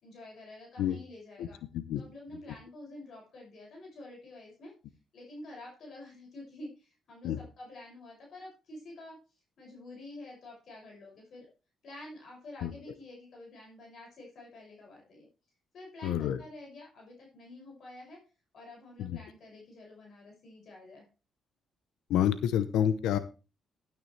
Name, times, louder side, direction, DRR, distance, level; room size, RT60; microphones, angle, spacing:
voice 1, 0.0-1.6 1.9-4.7 5.1-9.2 9.6-11.5 11.8-15.3 15.7-18.2 18.5-21.0, left 2 dB, 60° left, -1 dB, 6.5 m, -48 dB
voice 2, 16.0-16.4 19.0-19.2 22.1-23.2, left 10 dB, 85° left, 13 dB, 0.8 m, -28 dB
12.0 x 9.4 x 3.3 m, 0.32 s
cardioid pair, 90°, 0 cm